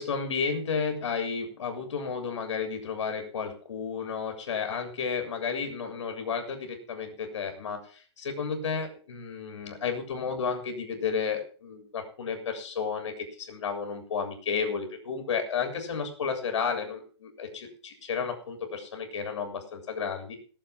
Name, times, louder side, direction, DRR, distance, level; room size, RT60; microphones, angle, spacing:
voice 1, 0.0-20.4, left 6 dB, 70° left, 5 dB, 3.4 m, -32 dB
17.0 x 7.1 x 5.8 m, 0.41 s
hypercardioid pair, 170°, 15 cm